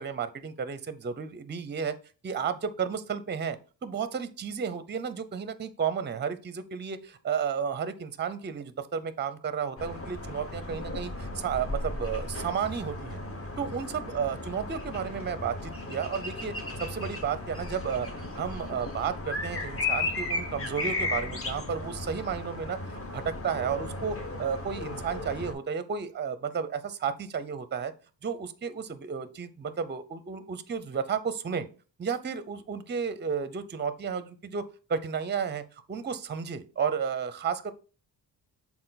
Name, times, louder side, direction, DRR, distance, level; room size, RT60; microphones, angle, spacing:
voice 1, 0.0-1.9 2.2-13.2 13.6-27.9 28.2-31.7 32.0-35.6 35.9-37.7, right 6 dB, 25° right, 12 dB, 0.5 m, -32 dB
sound 1, 9.8-25.5, left 2 dB, 30° left, 1.0 m, -35 dB
6.6 x 4.1 x 4.0 m, 0.36 s
wide cardioid pair, 135°, 44 cm